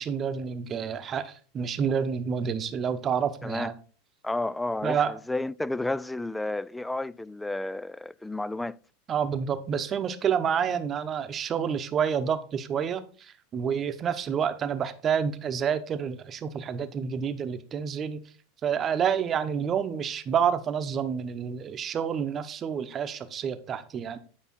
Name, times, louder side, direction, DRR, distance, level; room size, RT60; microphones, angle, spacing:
voice 1, 0.0-3.7 4.8-5.1 9.1-18.2 18.6-24.2, right 7 dB, 30° right, 0.9 m, -28 dB
voice 2, 4.2-8.8, left 2 dB, 5° left, 0.3 m, -31 dB
9.5 x 5.5 x 4.2 m
figure-of-eight pair, 85°, 0 cm